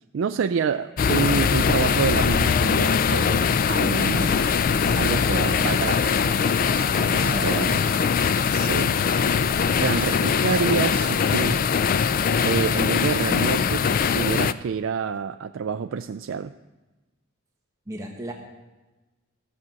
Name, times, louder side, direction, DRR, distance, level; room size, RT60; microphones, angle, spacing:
voice 1, 0.1-4.4 4.9-6.3 7.1-7.8 8.5-9.0 9.8-11.6 12.4-16.5, right 6 dB, 60° right, 8 dB, 0.3 m, -27 dB
sound 1, 1.0-14.5, left 6 dB, 40° left, 0.3 m, -22 dB
sound 2, 4.0-11.6, right 5 dB, 75° right, 1.8 m, -41 dB
voice 2, 6.9-8.1 17.9-18.3, right 1 dB, 15° right, 0 dB, 1.2 m, -34 dB
14.5 x 7.4 x 6.3 m, 1.1 s
head